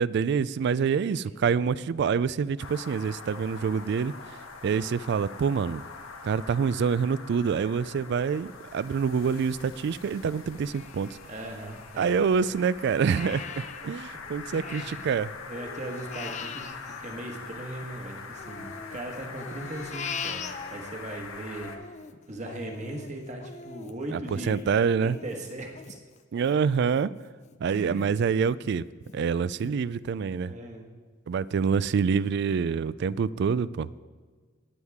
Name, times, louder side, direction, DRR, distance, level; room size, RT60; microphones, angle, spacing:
voice 1, 0.0-4.1 4.6-5.8 6.2-11.1 12.0-13.5 13.8-15.3 24.1-25.2 26.3-27.1 27.6-28.8 29.1-30.5 31.3-33.9, right 6 dB, 55° right, 18 dB, 0.3 m, -26 dB
sound 1, 2.6-21.8, left 4 dB, 90° left, 1.2 m, -44 dB
Crying sobbing, 10.7-12.4 12.8-15.2 15.5-17.9 18.4-21.2 21.6-27.0 27.5-27.6 28.0-28.6 29.1-29.2 29.6-29.7, left 5 dB, 35° left, 0.5 m, -42 dB
voice 2, 11.3-12.2 14.4-15.0 15.4-22.0 22.3-24.6 25.0-25.9 27.6-28.1 30.4-30.9, right 1 dB, 35° right, 1 dB, 1.5 m, -39 dB
19.0 x 8.1 x 3.6 m, 1.5 s
head